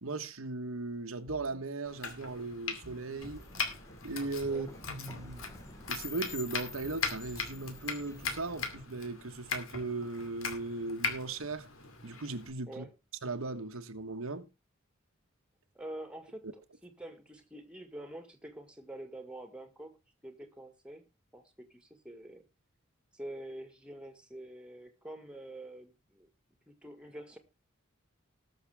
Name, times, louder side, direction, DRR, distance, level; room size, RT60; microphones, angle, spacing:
voice 1, 0.0-3.4 4.0-5.4 5.9-11.7 12.0-12.8 13.2-14.5 16.4-16.5, right 3 dB, 85° right, 1.2 m, -37 dB
sound 1, 1.3-1.6 2.8-3.6 4.8-5.6 6.8-7.6, right 2 dB, 35° right, 0.8 m, -54 dB
Domestic sounds home sounds, 1.9-12.5, left 5 dB, 80° left, 2.4 m, -40 dB
sound 2, 3.2-8.8, left 3 dB, 15° left, 1.3 m, -49 dB
voice 2, 15.8-19.9 20.2-21.0 21.3-22.4 23.1-26.3 26.7-27.4, right 1 dB, 5° right, 1.9 m, -46 dB
19.5 x 6.7 x 3.5 m
head